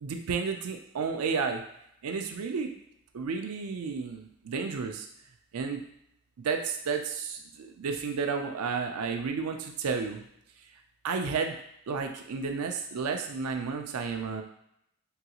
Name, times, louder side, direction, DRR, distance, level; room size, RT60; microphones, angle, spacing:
voice 1, 0.0-1.6 2.0-2.8 3.1-5.1 5.5-5.8 6.4-10.2 11.0-11.6 11.9-14.4, right 5 dB, 85° right, 4 dB, 0.4 m, -32 dB
3.8 x 2.3 x 2.9 m, 0.77 s
head